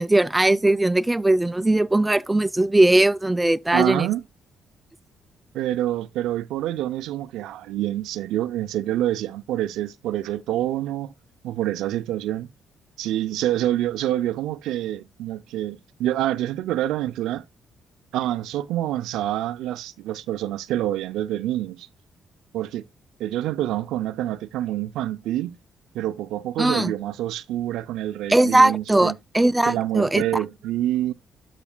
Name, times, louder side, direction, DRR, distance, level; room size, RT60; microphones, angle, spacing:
voice 1, 0.0-4.1 26.6-26.9 28.3-30.2, right 2 dB, 10° right, 0.5 m, -19 dB
voice 2, 3.7-4.2 5.5-11.1 11.4-12.5 13.0-17.4 18.1-21.9 22.5-22.9 23.2-25.6 25.9-29.2 29.7-31.1, right 13 dB, 90° right, 0.4 m, -27 dB
12.0 x 6.0 x 2.2 m
cardioid pair, 90°, 0 cm